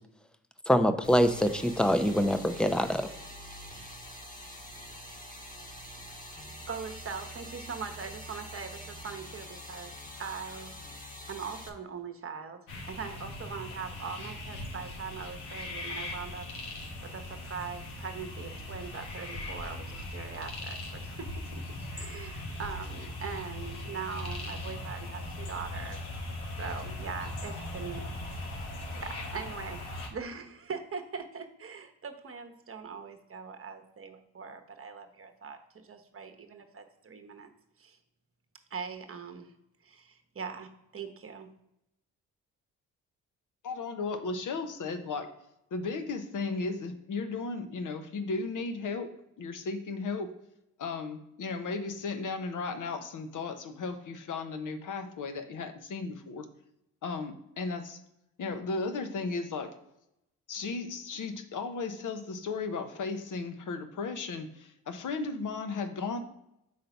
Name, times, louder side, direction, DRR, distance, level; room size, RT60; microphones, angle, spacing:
voice 1, 0.7-3.1, equal, ahead, 9 dB, 0.6 m, -24 dB
sound 1, 1.0-11.7, equal, 20° left, 1.3 m, -45 dB
voice 2, 6.7-9.9 10.2-11.0 11.3-12.6 12.9-16.5 17.0-21.6 21.9-26.0 26.6-28.7 29.0-29.8 30.1-37.5 37.8-38.0 38.7-39.5 39.8-41.5, right 5 dB, 35° right, 6 dB, 1.0 m, -41 dB
sound 2, 12.7-30.1, left 1 dB, 85° left, 1.1 m, -39 dB
voice 3, 43.6-45.3 45.7-49.1 49.4-50.3 50.8-56.5 57.0-58.0 58.4-59.7 60.5-66.2, left 4 dB, 60° left, 8 dB, 0.9 m, -35 dB
5.1 x 3.9 x 5.8 m, 0.83 s
supercardioid pair, 60°, 36 cm